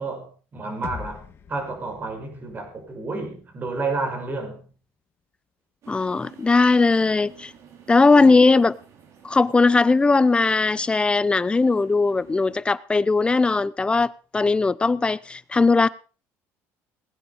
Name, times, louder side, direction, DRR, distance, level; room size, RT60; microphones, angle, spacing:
voice 1, 0.0-4.6, right 3 dB, 30° right, 5.7 m, -31 dB
sound 1, 0.8-4.8, left 7 dB, 40° left, 1.9 m, -43 dB
sound 2, 5.8-12.6, right 8 dB, 55° right, 4.2 m, -51 dB
voice 2, 5.9-7.5 7.9-8.8 9.2-15.9, left 3 dB, 15° left, 0.7 m, -19 dB
19.5 x 9.9 x 5.2 m
cardioid pair, 110°, 6 cm